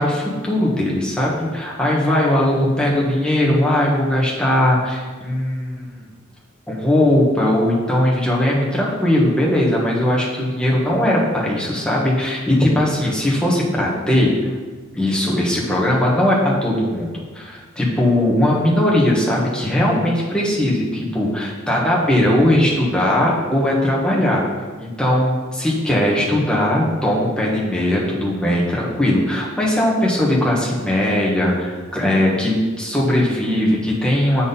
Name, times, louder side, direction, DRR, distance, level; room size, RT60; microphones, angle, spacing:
voice 1, 0.0-6.0 6.7-14.5 14.9-24.4 24.8-34.5, left 1 dB, 5° left, -4 dB, 1.4 m, -19 dB
7.4 x 4.2 x 5.5 m, 1.4 s
head